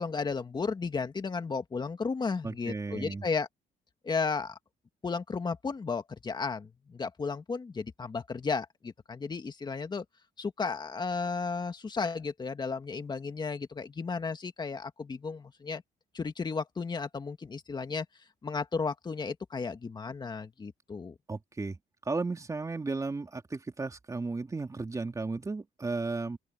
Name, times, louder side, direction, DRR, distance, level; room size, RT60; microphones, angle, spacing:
voice 1, 0.0-3.5 4.0-4.6 5.0-10.0 10.4-15.8 16.1-18.1 18.4-21.2, left 4 dB, 25° left, 2.1 m, -34 dB
voice 2, 2.4-3.2 21.3-21.8 22.0-26.4, right 3 dB, 20° right, 3.3 m, -34 dB
open air
cardioid pair, 110°, 17 cm